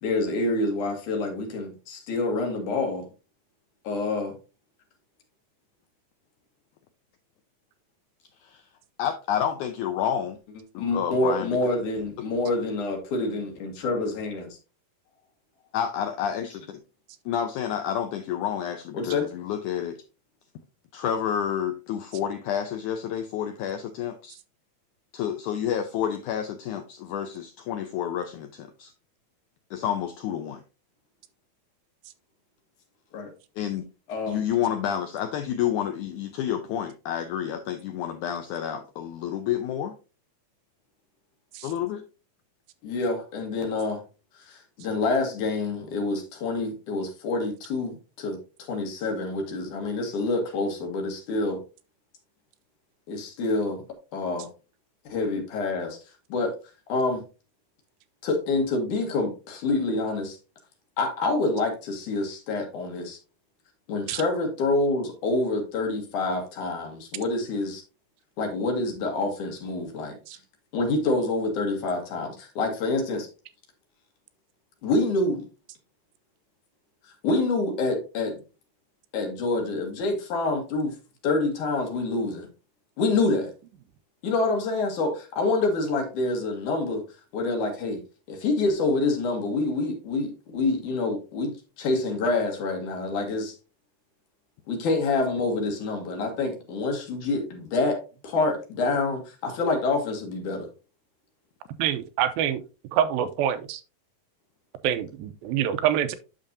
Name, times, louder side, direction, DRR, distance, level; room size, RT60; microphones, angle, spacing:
voice 1, 0.0-3.0 3.8-4.3 10.8-14.6 18.9-19.3 33.1-33.3 34.1-34.4 42.8-44.0 44.5-48.4 48.7-51.6 53.1-53.8 54.1-54.5 55.1-56.0 56.3-56.5 56.9-57.2 58.2-60.4 61.0-63.2 63.9-67.8 68.4-70.2 70.7-73.3 74.8-75.5 77.2-78.4 79.1-80.9 81.2-82.5 83.0-83.5 84.2-87.0 87.3-88.0 88.3-93.5 94.7-98.0 98.2-100.7, left 3 dB, 60° left, 2.9 m, -27 dB
voice 2, 9.0-10.4 10.7-11.5 15.7-16.8 17.3-20.0 20.9-24.4 25.1-28.9 29.7-30.6 33.6-33.8 34.3-39.9 41.6-42.0 97.2-97.3, left 9 dB, 80° left, 1.8 m, -29 dB
voice 3, 101.8-102.6 102.9-103.8 104.8-106.2, right 10 dB, 85° right, 2.4 m, -25 dB
8.8 x 6.4 x 2.7 m
omnidirectional pair, 4.2 m